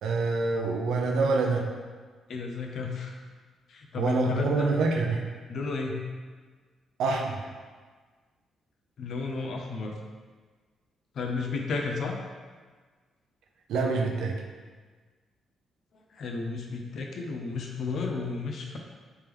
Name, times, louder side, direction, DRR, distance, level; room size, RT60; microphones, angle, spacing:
voice 1, 0.0-1.6 4.0-5.2 7.0-7.4 13.7-14.3, right 3 dB, 90° right, 1 dB, 0.5 m, -26 dB
voice 2, 2.3-3.1 3.7-4.7 5.5-6.0 9.0-10.0 11.1-12.2 16.1-18.8, left 4 dB, 50° left, 2 dB, 0.5 m, -32 dB
3.4 x 3.4 x 3.0 m, 1.5 s
cardioid pair, 160°, 0 cm